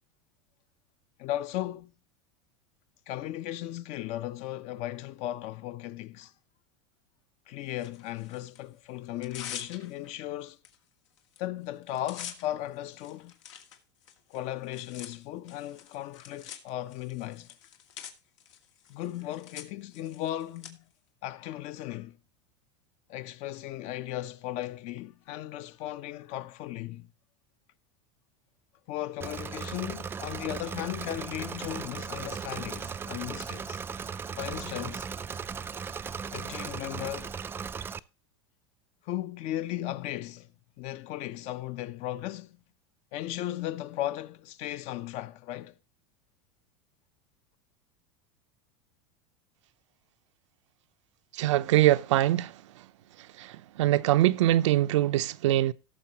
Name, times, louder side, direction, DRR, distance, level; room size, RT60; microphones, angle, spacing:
voice 1, 1.2-1.9 3.1-6.3 7.5-10.6 11.4-13.3 14.3-17.5 18.9-20.8 21.2-22.2 23.1-27.1 28.9-33.8 34.4-35.1 36.3-37.4 39.0-40.5 40.8-42.6 43.1-45.7, left 14 dB, 50° left, 0.8 m, -36 dB
Tearing, 7.8-8.6 9.0-10.1 10.6-10.8 11.0-11.4 11.6-20.7, left 9 dB, 80° left, 2.3 m, -46 dB
Engine / Mechanisms, 29.2-38.0, right 6 dB, 15° right, 0.4 m, -37 dB
voice 2, 51.3-52.9 53.2-55.7, right 14 dB, 90° right, 0.7 m, -24 dB
17.5 x 6.9 x 3.0 m
supercardioid pair, 140°, 15 cm